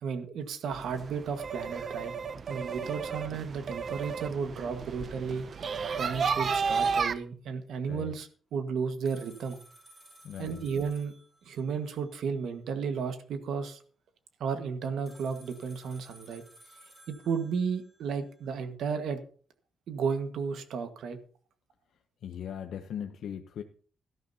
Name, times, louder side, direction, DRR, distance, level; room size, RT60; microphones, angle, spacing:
voice 1, 0.0-2.1 2.5-5.4 5.9-9.6 10.4-11.1 11.5-13.8 14.4-16.4 17.1-19.2 19.9-21.2, right 6 dB, 65° right, 8 dB, 1.5 m, -33 dB
sound 1, 0.7-7.1, right 5 dB, 35° right, 0.5 m, -32 dB
sound 2, 9.1-12.4 15.1-18.4, right 1 dB, 10° right, 4.3 m, -57 dB
voice 2, 10.2-10.7 22.2-23.6, left 9 dB, 60° left, 6 dB, 0.7 m, -39 dB
17.5 x 13.0 x 2.8 m, 0.42 s
cardioid pair, 180°, 0 cm